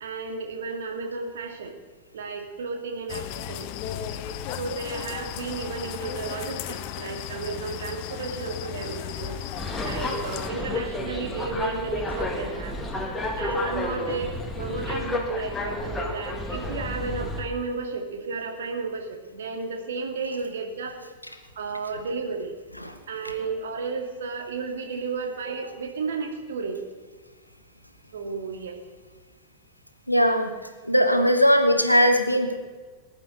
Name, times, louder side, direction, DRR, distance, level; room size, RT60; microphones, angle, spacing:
voice 1, 0.0-1.8 2.1-3.7 4.6-9.4 9.8-12.8 13.4-21.1 21.6-22.6 23.1-26.8 28.1-28.8, right 4 dB, 65° right, 4 dB, 2.1 m, -33 dB
sound 1, 3.1-10.5, left 10 dB, 45° left, 0.8 m, -35 dB
sound 2, 9.6-17.4, left 2 dB, 10° left, 2.0 m, -31 dB
voice 2, 30.1-30.5 30.8-32.6, equal, 90° left, 7 dB, 1.3 m, -19 dB
20.0 x 10.5 x 4.0 m, 1.4 s
figure-of-eight pair, 90°, 0 cm